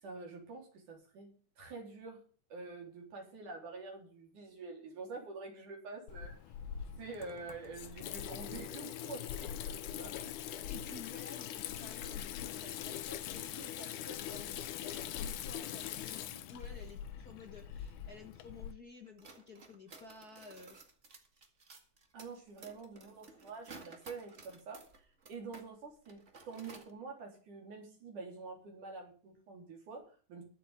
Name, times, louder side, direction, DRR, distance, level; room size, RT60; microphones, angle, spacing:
voice 1, 0.0-2.2 2.5-6.4 6.7-10.1 22.1-24.8 25.3-26.2 26.5-30.4, right 4 dB, 75° right, 1 dB, 5.4 m, -47 dB
Water tap faucet / Sink (filling or washing), 6.1-18.7, left 10 dB, 80° left, 2.4 m, -42 dB
voice 2, 10.7-20.8, left 3 dB, 40° left, 4 dB, 1.5 m, -53 dB
sound 1, 19.0-25.7 26.0-26.9, right 3 dB, 30° right, 1.8 m, -55 dB
22.0 x 7.8 x 3.7 m, 0.40 s
omnidirectional pair, 3.6 m